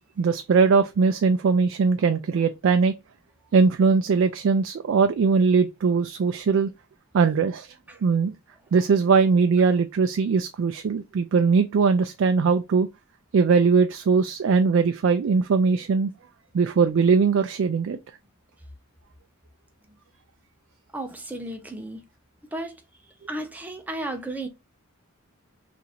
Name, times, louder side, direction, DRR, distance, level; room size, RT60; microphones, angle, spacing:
voice 1, 0.2-2.9 3.5-6.7 7.1-7.7 8.0-8.3 8.7-12.9 13.3-16.1 16.5-18.0, right 5 dB, 60° right, 0.3 m, -20 dB
voice 2, 20.9-22.0 22.5-22.7 23.3-24.5, right 1 dB, 10° right, 0.5 m, -33 dB
2.8 x 2.5 x 4.0 m
head